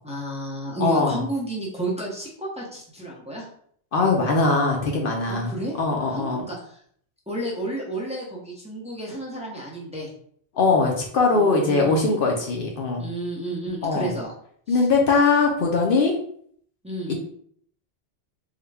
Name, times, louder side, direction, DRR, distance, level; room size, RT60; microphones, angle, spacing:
voice 1, 0.0-3.5 5.3-5.8 6.0-6.8 7.3-10.1 11.3-12.2 13.0-14.3 14.7-14.9 16.8-17.1, right 2 dB, 5° right, -3 dB, 0.7 m, -31 dB
voice 2, 0.8-1.2 3.9-5.5 5.8-6.4 10.6-13.0 13.8-14.1 14.7-16.1 17.1-17.2, left 3 dB, 65° left, 1 dB, 0.7 m, -21 dB
3.7 x 2.2 x 3.3 m, 0.63 s
omnidirectional pair, 1.1 m